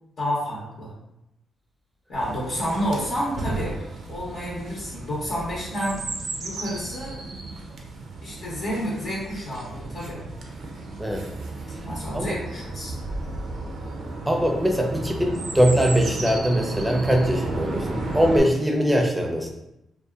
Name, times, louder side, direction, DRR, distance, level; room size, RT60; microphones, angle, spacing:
voice 1, 0.2-0.9 2.1-3.8 4.1-6.0 6.4-7.2 8.2-10.2 11.8-12.9, equal, 65° left, -6 dB, 0.8 m, -29 dB
Chirp tweet, 2.1-18.4, right 2 dB, 70° right, 0.4 m, -34 dB
voice 2, 14.3-19.5, equal, 10° right, 2 dB, 0.5 m, -22 dB
2.6 x 2.3 x 2.3 m, 0.86 s
supercardioid pair, 60°, 0 cm